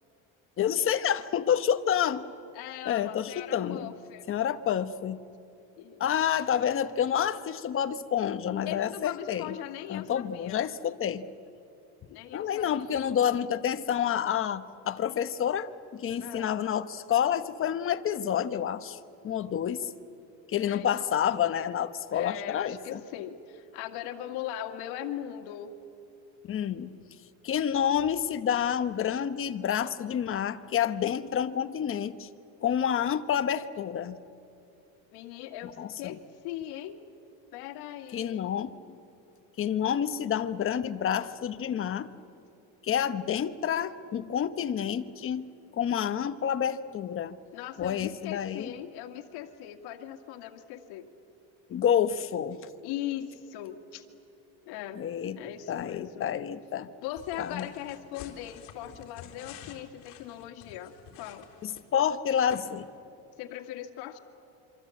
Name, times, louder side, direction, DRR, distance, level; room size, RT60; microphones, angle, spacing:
voice 1, 0.6-2.3 2.9-3.9 4.3-5.2 6.0-9.5 9.9-11.3 12.3-19.0 19.2-19.9 20.5-23.0 26.5-26.9 27.4-32.3 32.6-34.2 35.8-36.2 38.1-38.7 39.6-42.1 42.8-45.4 45.7-47.4 47.8-48.7 51.7-52.6 54.9-55.4 55.7-56.9 57.4-57.7 61.6-62.9, left 9 dB, 35° left, 10 dB, 1.1 m, -28 dB
voice 2, 2.5-4.3 5.8-6.0 8.7-10.8 12.1-13.1 16.2-16.6 20.7-20.9 22.1-25.7 35.1-36.2 36.4-37.0 37.5-38.5 47.5-51.1 52.8-54.1 54.7-55.0 55.4-56.3 57.0-61.5 63.4-64.2, left 11 dB, 85° left, 6 dB, 2.1 m, -39 dB
sound 1, 57.2-62.1 62.5-62.6, left 9 dB, 60° left, 3.8 m, -49 dB
26.5 x 25.5 x 8.5 m, 2.7 s
cardioid pair, 145°, 37 cm